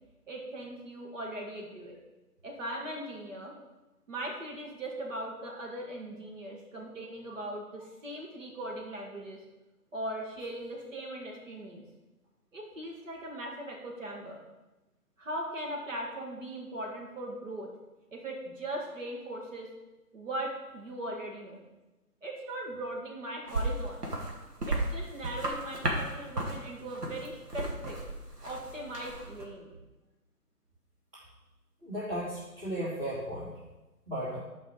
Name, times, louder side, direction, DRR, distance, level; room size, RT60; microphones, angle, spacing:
voice 1, 0.3-2.0 2.4-3.5 4.1-9.4 9.9-11.8 12.5-14.4 15.2-17.7 18.1-19.7 20.1-21.6 22.2-24.0 24.7-28.0 28.4-29.7, right 1 dB, 50° right, -1 dB, 2.4 m, -39 dB
sound 1, 23.5-29.4, right 2 dB, 75° right, 2.4 m, -35 dB
voice 2, 31.8-33.5 34.1-34.4, equal, 20° right, -12 dB, 2.9 m, -35 dB
10.0 x 5.4 x 5.1 m, 1.1 s
figure-of-eight pair, 155°, 47 cm